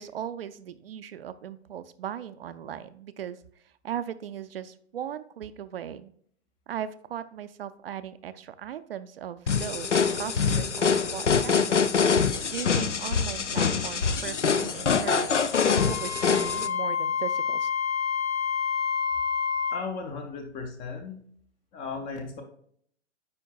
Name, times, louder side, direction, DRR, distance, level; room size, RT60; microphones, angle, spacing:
voice 1, 0.0-3.4 3.8-6.1 6.7-11.8 12.1-15.5 15.8-17.7, right 9 dB, 55° right, 12 dB, 0.5 m, -38 dB
sound 1, 9.5-16.7, left 5 dB, 90° left, 0.5 m, -24 dB
Wind instrument woodwind instrument, 15.7-19.8, left 6 dB, 60° left, 1.2 m, -28 dB
voice 2, 19.7-21.2 21.7-22.4, left 4 dB, 15° left, 5 dB, 0.4 m, -36 dB
9.4 x 4.5 x 2.3 m, 0.63 s
figure-of-eight pair, 110°, 35 cm